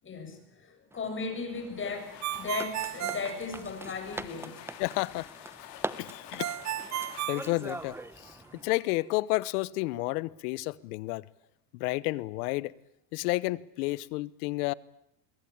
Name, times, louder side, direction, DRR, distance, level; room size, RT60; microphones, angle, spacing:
voice 1, 0.0-4.6, left 4 dB, 25° left, 7.7 m, -36 dB
sound 1, 0.9-8.7, right 2 dB, 5° right, 0.9 m, -43 dB
sound 2, 1.5-9.0, left 12 dB, 85° left, 3.5 m, -50 dB
Ringtone, 2.2-4.1 6.4-8.3, right 12 dB, 35° right, 1.1 m, -35 dB
voice 2, 4.8-5.3 6.0-6.5 7.3-8.4 8.6-11.2 11.7-12.7 13.1-14.7, left 21 dB, 70° left, 1.1 m, -31 dB
25.0 x 23.0 x 8.8 m
supercardioid pair, 125°, 47 cm